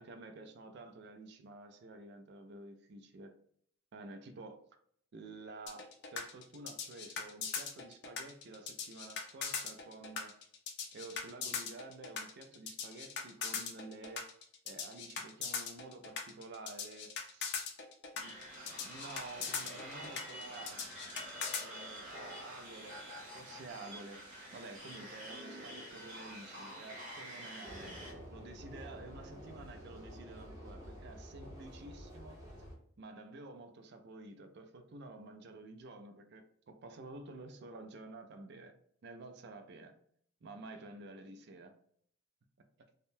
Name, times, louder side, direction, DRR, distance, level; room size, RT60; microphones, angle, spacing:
voice 1, 0.0-3.3 3.9-4.6 5.1-10.3 10.9-14.2 14.6-17.5 18.2-18.3 18.8-20.8 21.6-23.0 23.3-24.2 24.5-27.9 28.3-32.4 33.0-38.7 39.0-39.9 40.4-41.7, right 2 dB, 55° right, 0.4 m, -50 dB
sound 1, 5.7-21.7, left 6 dB, 55° left, 0.5 m, -40 dB
sound 2, 18.2-28.1, equal, 40° right, 1.4 m, -48 dB
sound 3, 27.6-32.7, equal, 15° right, 0.9 m, -49 dB
3.5 x 2.1 x 2.6 m
head